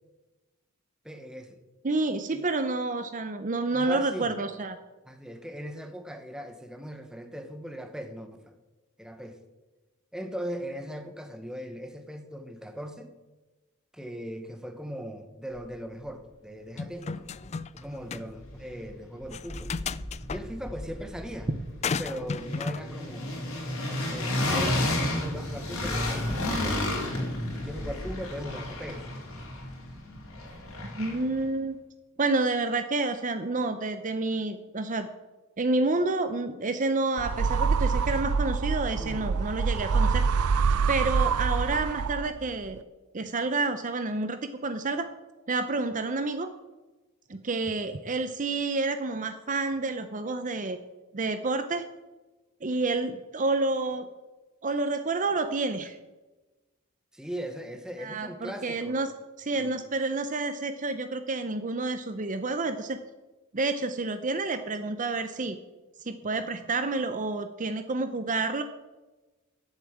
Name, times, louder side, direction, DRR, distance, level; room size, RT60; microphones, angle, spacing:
voice 1, 1.0-1.6 2.3-2.5 3.7-4.3 5.1-8.5 9.0-9.4 10.1-13.1 13.9-17.3 17.7-19.8 20.3-21.5 22.0-23.3 24.1-26.9 27.6-29.0 39.0-39.3 57.1-59.0 59.5-59.8, equal, 5° right, 7 dB, 1.2 m, -39 dB
voice 2, 1.8-4.8 21.5-21.6 30.9-31.8 32.2-35.1 35.6-40.3 40.9-42.8 43.1-45.1 45.5-46.5 47.3-50.8 51.1-51.9 52.6-54.1 54.6-56.0 58.0-59.1 59.4-63.0 63.5-65.6 66.0-68.6, right 3 dB, 35° right, 9 dB, 0.7 m, -29 dB
sound 1, 16.8-17.8 18.1-18.2 19.3-20.4 21.8-22.8, left 5 dB, 30° left, 0.3 m, -33 dB
sound 2, 17.4-17.5 17.8-18.9 19.2-31.4, left 1 dB, 75° left, 4.1 m, -32 dB
sound 3, 37.2-42.5, right 5 dB, 90° right, 0.5 m, -26 dB
11.0 x 8.5 x 8.4 m, 1.1 s
head